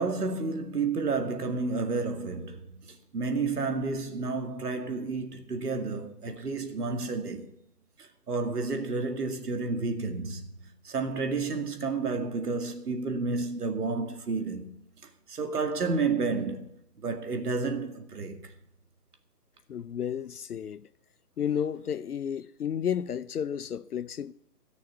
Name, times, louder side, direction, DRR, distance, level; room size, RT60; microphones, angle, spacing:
voice 1, 0.0-7.5 8.0-14.7 15.0-16.7 17.0-18.5, right 4 dB, 70° right, 2.3 m, -31 dB
voice 2, 19.7-20.9 21.4-24.3, left 8 dB, 65° left, 0.8 m, -32 dB
17.5 x 6.4 x 8.1 m
hypercardioid pair, 160°, 49 cm